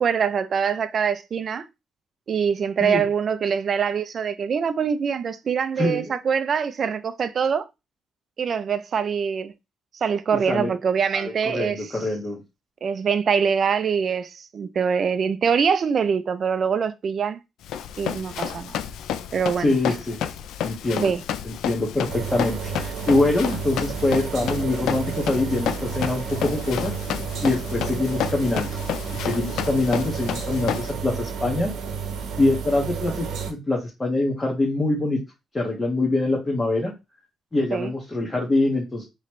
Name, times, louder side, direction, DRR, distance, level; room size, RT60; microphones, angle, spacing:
voice 1, 0.0-1.6 2.3-7.6 8.4-9.5 10.0-11.8 12.8-17.4 18.0-18.8 19.3-19.7 21.0-21.2 37.7-37.9, right 6 dB, 50° right, 0.5 m, -24 dB
voice 2, 5.8-6.2 10.5-10.7 11.1-12.4 19.6-20.2 20.6-21.1 21.4-26.9 27.4-28.8 29.1-31.7 32.4-35.2 35.5-36.9 37.5-39.0, left 2 dB, 20° left, 1.4 m, -24 dB
Run, 17.6-30.9, left 9 dB, 80° left, 0.4 m, -31 dB
sound 1, 22.1-33.5, right 6 dB, 75° right, 0.9 m, -31 dB
4.1 x 3.1 x 3.1 m
cardioid pair, 90°, 0 cm